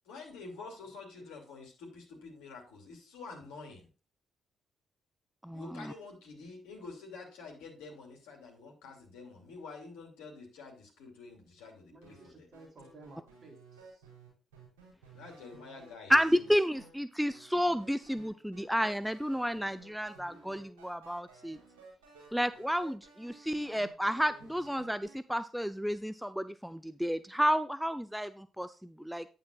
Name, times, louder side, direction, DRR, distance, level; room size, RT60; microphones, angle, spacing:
voice 1, 0.0-3.9 5.5-12.5 15.1-16.5, left 4 dB, 70° left, 1 dB, 2.8 m, -48 dB
voice 2, 5.4-5.9 16.1-21.6 22.3-29.3, equal, ahead, 13 dB, 0.6 m, -31 dB
voice 3, 11.9-14.0, right 2 dB, 40° right, 2 dB, 3.7 m, -55 dB
sound 1, 12.0-15.9 16.3-16.9 17.3-25.2, right 4 dB, 75° right, 4.8 m, -56 dB
9.4 x 8.6 x 2.4 m, 0.35 s
figure-of-eight pair, 40°, 0 cm